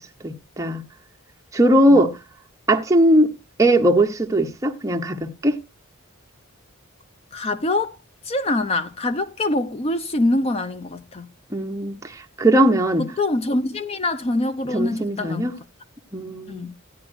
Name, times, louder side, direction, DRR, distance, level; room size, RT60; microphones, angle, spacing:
voice 1, 0.2-0.8 1.5-2.1 2.7-3.3 3.6-5.6 11.5-13.0 14.7-15.5 16.1-16.7, right 1 dB, 15° right, 1.0 m, -19 dB
voice 2, 7.3-8.0 8.2-11.3 13.0-15.5 16.5-16.7, left 2 dB, 30° left, 0.5 m, -24 dB
14.5 x 9.9 x 2.5 m
head